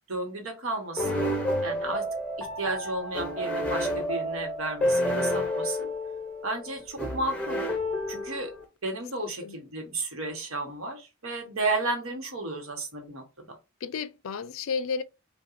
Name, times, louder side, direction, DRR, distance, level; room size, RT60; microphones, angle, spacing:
voice 1, 0.1-1.3 1.6-2.0 2.4-5.9 6.4-7.6 8.1-8.5 8.8-13.5, right 2 dB, 75° right, 1.2 m, -33 dB
sound 1, 1.0-8.6, equal, 5° left, 0.8 m, -30 dB
voice 2, 9.2-9.6 13.8-15.0, left 5 dB, 70° left, 0.4 m, -32 dB
5.7 x 2.3 x 2.5 m
head